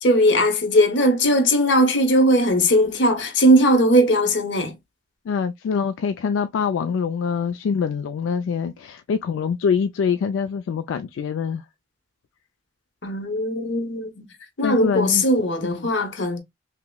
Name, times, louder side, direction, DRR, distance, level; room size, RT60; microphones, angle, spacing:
voice 1, 0.0-4.7 13.0-14.3 14.6-16.4, equal, 65° left, 0.9 m, -19 dB
voice 2, 5.3-11.6 14.6-15.2, left 6 dB, 85° left, 0.3 m, -24 dB
5.5 x 2.0 x 2.2 m
head